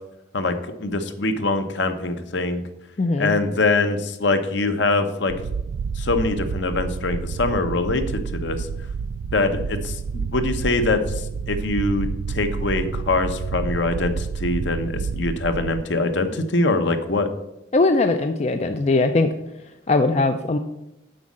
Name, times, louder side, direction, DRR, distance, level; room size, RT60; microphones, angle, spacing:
voice 1, 0.8-2.6 3.2-5.3 6.0-8.7 9.3-11.0 11.5-17.3, left 2 dB, 65° left, 8 dB, 0.9 m, -23 dB
voice 2, 3.0-3.3 17.7-19.3 19.9-20.6, left 3 dB, 35° left, 7 dB, 0.4 m, -20 dB
sound 1, 5.3-15.8, right 5 dB, 75° right, 0.3 m, -29 dB
7.7 x 5.3 x 7.4 m, 0.89 s
head